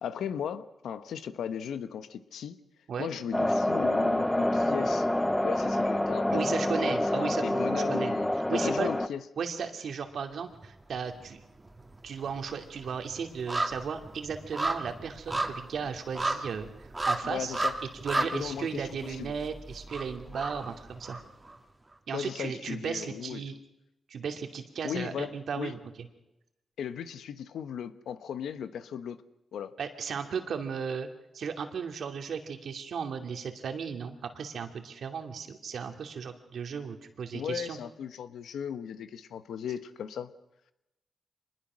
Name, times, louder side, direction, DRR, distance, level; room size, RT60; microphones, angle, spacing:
voice 1, 0.0-2.6 3.0-5.1 5.4-9.2 17.2-17.7 18.1-19.3 22.1-23.4 24.8-25.7 26.8-29.2 29.5-29.7 37.3-40.3, left 8 dB, 90° left, 12 dB, 1.2 m, -37 dB
sound 1, 3.3-9.1, left 1 dB, 10° left, 0.9 m, -27 dB
voice 2, 6.3-8.9 9.4-11.5 12.0-17.5 18.0-21.2 22.1-23.5 24.1-25.8 29.8-31.1 31.3-37.8, right 6 dB, 75° right, 6 dB, 2.6 m, -35 dB
sound 2, 10.5-11.3 11.6-21.6 21.9-22.0, right 2 dB, 25° right, 2.6 m, -34 dB
25.5 x 20.5 x 6.3 m, 0.91 s
cardioid pair, 75°, 0 cm